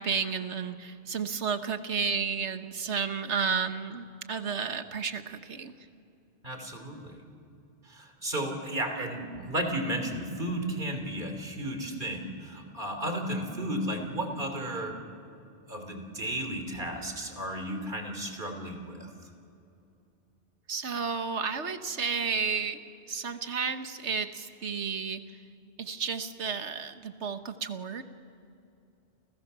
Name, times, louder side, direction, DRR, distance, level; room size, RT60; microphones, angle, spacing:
voice 1, 0.0-5.7 20.7-22.8 23.1-25.4 25.8-28.0, right 6 dB, 85° right, 9 dB, 1.6 m, -32 dB
voice 2, 6.4-7.2 7.8-15.0 15.7-19.1, right 1 dB, 45° right, 5 dB, 3.5 m, -33 dB
29.0 x 28.5 x 6.9 m, 2.7 s
omnidirectional pair, 1.1 m